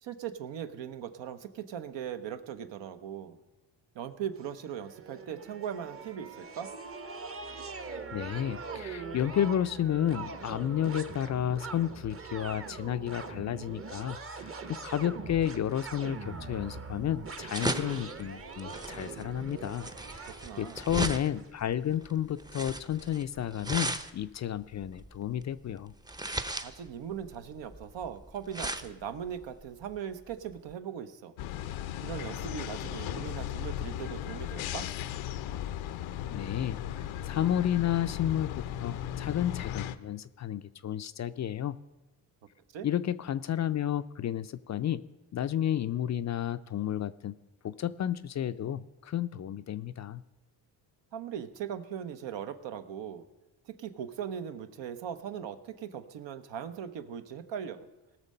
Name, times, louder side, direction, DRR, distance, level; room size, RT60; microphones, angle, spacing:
voice 1, 0.0-3.4 3.9-6.7 20.3-20.8 26.6-31.3 32.0-34.9 42.7-42.9 51.1-53.2 53.7-57.9, right 8 dB, 70° right, 9 dB, 1.0 m, -39 dB
sound 1, 4.4-21.5, right 4 dB, 30° right, 0.9 m, -42 dB
voice 2, 8.1-19.9 20.1-25.9 36.3-41.8 42.8-45.1 45.3-47.4 47.6-50.2, left 10 dB, 40° left, 13 dB, 0.4 m, -32 dB
sound 2, 16.0-30.7, right 2 dB, 10° right, 0.6 m, -38 dB
sound 3, 31.4-40.0, left 11 dB, 85° left, 0.7 m, -36 dB
18.5 x 6.5 x 5.5 m, 1.1 s
cardioid pair, 85°, 45 cm